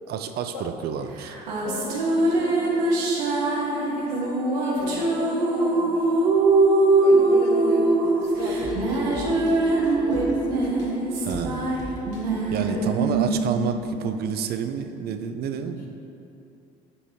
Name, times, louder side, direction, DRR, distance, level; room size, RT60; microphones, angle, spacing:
voice 1, 0.1-1.3 11.2-11.8 12.5-15.9, right 7 dB, 55° right, 8 dB, 0.5 m, -29 dB
sound 1, 1.2-14.8, right 2 dB, 90° right, 1.0 m, -23 dB
voice 2, 1.6-2.9 3.7-6.3 7.0-10.8 12.6-13.0, left 3 dB, 90° left, -1 dB, 1.0 m, -36 dB
sound 2, 8.2-13.4 13.8-13.9, left 1 dB, 70° left, 1.4 m, -42 dB
8.2 x 5.5 x 2.7 m, 2.7 s
supercardioid pair, 70°, 20 cm